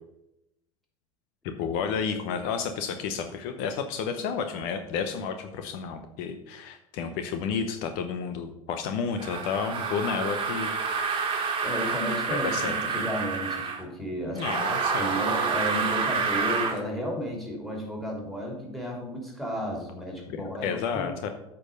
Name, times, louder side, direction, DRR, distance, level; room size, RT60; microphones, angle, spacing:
voice 1, 1.4-10.7 12.3-12.8 14.3-15.2 20.4-21.3, left 6 dB, 55° left, 7 dB, 0.9 m, -31 dB
sound 1, 9.2-13.8 14.4-16.8, right 5 dB, 30° right, 1.7 m, -28 dB
voice 2, 11.6-21.1, equal, ahead, 0 dB, 3.1 m, -33 dB
8.6 x 4.7 x 6.5 m, 0.87 s
hypercardioid pair, 90°, 18 cm